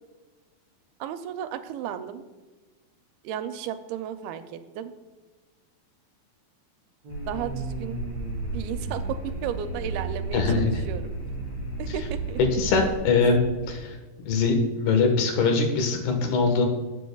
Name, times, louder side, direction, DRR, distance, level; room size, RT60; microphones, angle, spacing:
voice 1, 1.0-2.2 3.2-4.9 7.3-8.0 8.5-11.1 11.8-12.4, right 9 dB, 85° right, 10 dB, 2.4 m, -34 dB
sound 1, 7.0-13.8, right 5 dB, 65° right, 1.7 m, -36 dB
sound 2, 7.1-12.9, right 1 dB, 60° left, 3.9 m, -35 dB
voice 2, 10.3-10.8 12.5-14.0 14.2-16.7, left 4 dB, 85° left, 4 dB, 3.3 m, -22 dB
18.5 x 7.8 x 2.3 m, 1.3 s
omnidirectional pair, 4.4 m